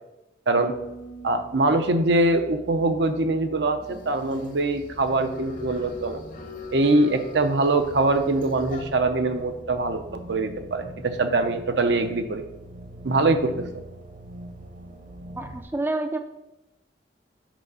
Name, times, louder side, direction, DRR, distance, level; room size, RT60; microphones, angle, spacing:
Harp, 0.5-4.6 4.9-5.5 6.0-6.3, right 4 dB, 85° left, 1.4 m, -46 dB
sound 1, 0.7-15.6, right 1 dB, 45° right, 0.9 m, -44 dB
voice 1, 1.2-6.2 6.7-12.4 13.0-13.8, right 2 dB, 70° right, 7 dB, 0.7 m, -23 dB
sound 2, 3.8-8.8, left 4 dB, 45° left, 0.9 m, -42 dB
voice 2, 15.4-16.2, right 2 dB, 10° right, 6 dB, 0.4 m, -28 dB
6.1 x 4.6 x 5.5 m, 0.94 s
head